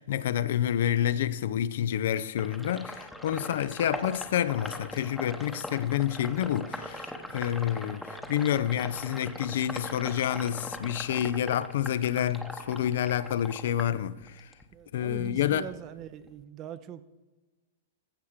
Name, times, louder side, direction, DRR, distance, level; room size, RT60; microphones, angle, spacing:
voice 1, 0.0-14.5 14.9-15.7, left 10 dB, 70° left, 0.5 m, -28 dB
Sink (filling or washing), 2.4-14.6 15.0-16.4, left 1 dB, ahead, 0.9 m, -41 dB
voice 2, 14.7-17.0, right 9 dB, 35° right, 0.7 m, -42 dB
15.0 x 5.7 x 5.0 m
hypercardioid pair, 125°, 0 cm